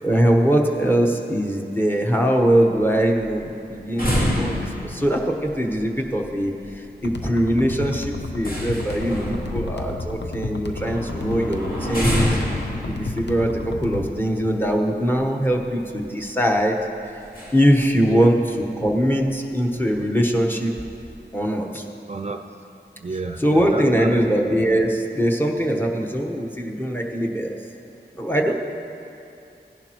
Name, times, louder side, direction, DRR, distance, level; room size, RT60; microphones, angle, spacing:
voice 1, 0.0-4.6 4.8-6.5 7.0-12.4 12.8-17.1 17.5-20.7 21.3-21.8 23.4-27.6 28.2-28.5, equal, 10° left, 1 dB, 1.1 m, -21 dB
sound 1, 2.8-15.2 15.6-15.7 16.0-16.2 17.2-17.8 18.1-18.2 18.5-18.6 19.3-19.4 19.6-19.9 20.3-21.1, equal, 55° left, 2.0 m, -29 dB
sound 2, 7.0-14.1, left 3 dB, 75° left, 0.8 m, -32 dB
voice 2, 22.1-22.4 23.0-24.2, right 3 dB, 40° right, 4 dB, 0.4 m, -30 dB
16.0 x 10.5 x 3.0 m, 2.7 s
wide cardioid pair, 45°, 18 cm